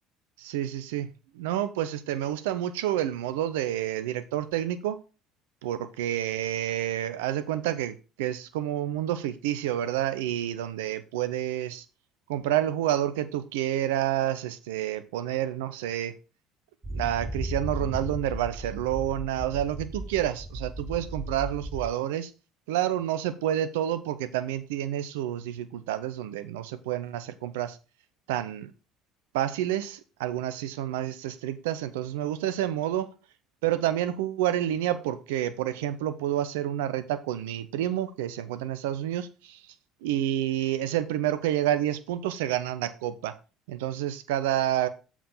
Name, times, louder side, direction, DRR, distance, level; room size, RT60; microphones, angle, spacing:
voice 1, 0.4-1.1 1.3-5.0 5.6-11.8 12.3-16.1 16.9-22.3 22.7-27.8 28.3-28.7 29.3-33.1 33.6-39.6 40.0-43.3 43.7-44.9, right 12 dB, 75° right, 0.6 m, -29 dB
sound 1, 16.8-21.9, right 1 dB, 30° right, 2.5 m, -35 dB
7.3 x 4.9 x 5.4 m
hypercardioid pair, 60°, 0 cm